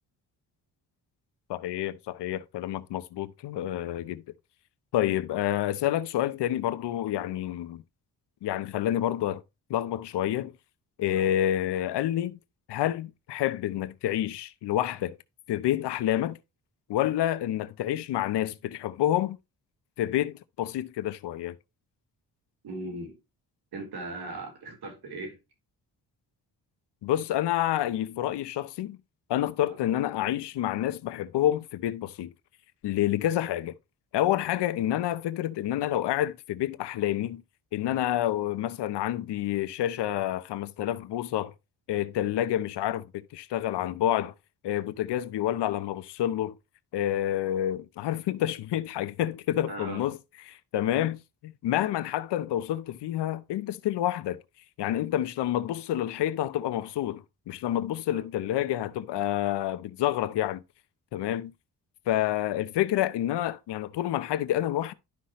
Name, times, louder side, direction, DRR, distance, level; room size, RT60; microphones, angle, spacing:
voice 1, 1.5-4.2 4.9-7.8 8.4-9.4 9.7-10.5 11.0-12.4 12.7-15.2 15.5-16.4 16.9-19.4 20.0-21.6 27.0-29.0 29.3-32.3 32.8-33.7 34.1-37.4 37.7-41.5 41.9-44.3 44.6-46.5 46.9-50.2 50.5-54.4 54.8-60.6 61.1-61.5 62.1-64.9, left 12 dB, 90° left, 0.8 m, -28 dB
voice 2, 22.6-23.2 23.7-25.4 29.7-29.8 49.7-50.1 58.1-58.2, right 2 dB, 70° right, 4.0 m, -38 dB
12.0 x 5.7 x 3.1 m
cardioid pair, 90°, 40 cm